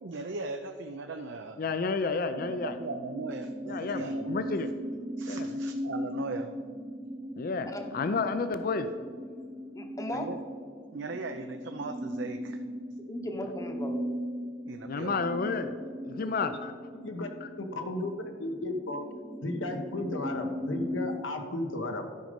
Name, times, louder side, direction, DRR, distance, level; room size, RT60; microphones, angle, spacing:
voice 1, 0.0-1.7 2.5-4.6 5.2-6.5 10.1-10.4 10.9-12.6 14.7-15.3, right 3 dB, 70° right, 6 dB, 0.5 m, -39 dB
voice 2, 1.6-2.7 3.7-4.7 5.3-5.6 7.4-8.9 14.9-15.7 16.0-16.7, left 4 dB, 50° left, 10 dB, 0.4 m, -31 dB
sound 1, 2.3-21.2, equal, 5° right, 0.6 m, -38 dB
voice 3, 9.7-10.3 13.0-14.0 16.2-16.5, left 1 dB, 15° left, 4 dB, 0.9 m, -37 dB
voice 4, 16.9-17.3 17.8-19.1 19.4-22.0, left 2 dB, 80° left, 5 dB, 1.2 m, -34 dB
12.0 x 5.3 x 5.2 m, 2.1 s
head